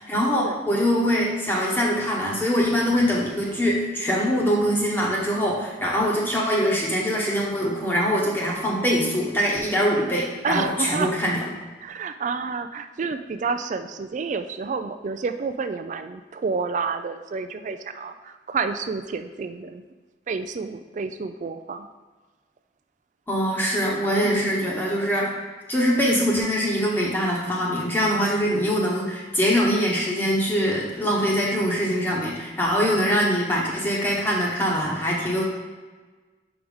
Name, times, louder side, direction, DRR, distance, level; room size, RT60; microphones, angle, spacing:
voice 1, 0.1-11.4 23.3-25.3 25.7-35.4, equal, 10° left, -4 dB, 1.0 m, -23 dB
voice 2, 10.4-11.1 11.8-19.8 20.3-21.9 24.2-24.7, right 5 dB, 45° right, 9 dB, 0.3 m, -30 dB
4.9 x 4.6 x 5.4 m, 1.3 s
head